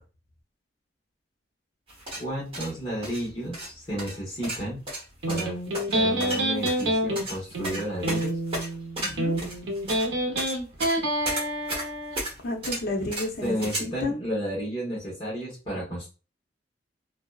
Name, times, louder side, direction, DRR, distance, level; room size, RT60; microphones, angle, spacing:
sound 1, 1.9-13.8, right 1 dB, 30° right, 1.1 m, -35 dB
voice 1, 2.2-4.8 5.3-5.6 5.9-8.4 13.4-16.1, equal, 30° left, 1.1 m, -32 dB
Electric guitar, 5.2-12.2, right 1 dB, 70° right, 0.7 m, -27 dB
voice 2, 9.0-9.3 12.4-14.2, left 2 dB, 55° left, 0.6 m, -31 dB
2.7 x 2.2 x 2.3 m
head